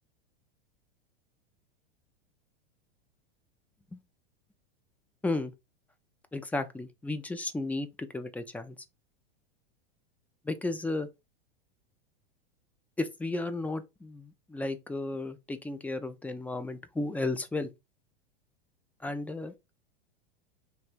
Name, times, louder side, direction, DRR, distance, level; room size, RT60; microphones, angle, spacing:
voice 1, 6.3-8.8 10.5-11.1 13.0-17.7 19.0-19.5, left 2 dB, 5° left, 0.4 m, -34 dB
3.4 x 2.8 x 4.3 m
hypercardioid pair, 110°, 30 cm